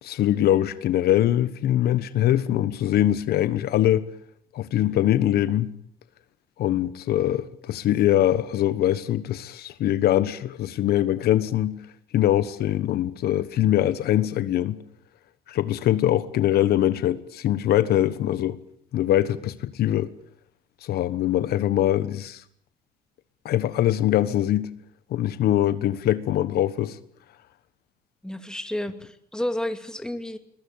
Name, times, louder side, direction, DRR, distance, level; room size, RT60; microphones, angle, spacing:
voice 1, 0.0-4.1 4.5-5.7 6.6-11.8 12.1-14.8 15.5-18.6 18.9-20.1 20.8-22.4 23.4-24.7 25.1-27.0, left 12 dB, 70° left, 1.3 m, -23 dB
voice 2, 28.2-30.4, left 1 dB, 5° left, 2.4 m, -31 dB
21.5 x 21.0 x 8.9 m
cardioid pair, 110°, 17 cm